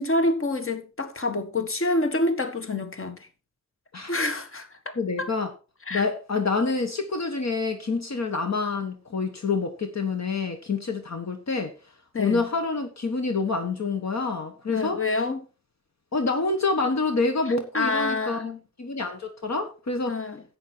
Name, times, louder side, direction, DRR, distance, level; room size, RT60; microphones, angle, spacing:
voice 1, 0.0-3.3 4.1-5.3 5.9-6.1 12.1-12.4 14.7-15.4 17.7-18.6 20.1-20.4, left 2 dB, 45° left, 1.7 m, -27 dB
voice 2, 5.0-5.5 5.9-11.7 12.2-15.0 16.1-18.5 18.8-20.2, left 3 dB, 65° left, 1.4 m, -27 dB
11.0 x 8.5 x 4.4 m
wide cardioid pair, 80°, 30 cm